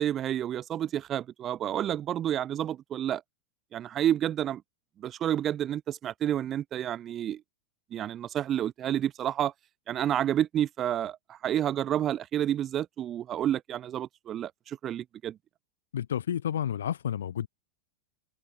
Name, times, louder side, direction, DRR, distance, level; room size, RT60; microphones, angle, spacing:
voice 1, 0.0-3.2 3.7-4.6 5.0-7.4 7.9-9.5 9.9-15.4, right 11 dB, 30° right, 0.5 m, -30 dB
voice 2, 15.9-17.5, left 9 dB, 65° left, 0.5 m, -30 dB
figure-of-eight pair, 90°, 0 cm